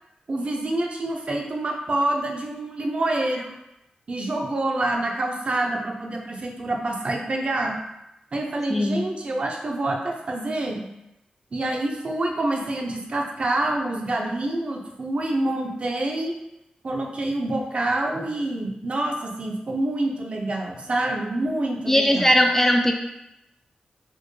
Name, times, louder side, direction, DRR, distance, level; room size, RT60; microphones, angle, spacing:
voice 1, 0.3-3.5 4.1-7.8 8.3-10.8 11.5-16.3 16.8-22.3, right 2 dB, 50° right, 1 dB, 0.5 m, -27 dB
voice 2, 8.7-9.1 21.9-22.9, equal, 15° left, 2 dB, 0.3 m, -19 dB
4.3 x 2.1 x 3.1 m, 0.88 s
wide cardioid pair, 95°, 3 cm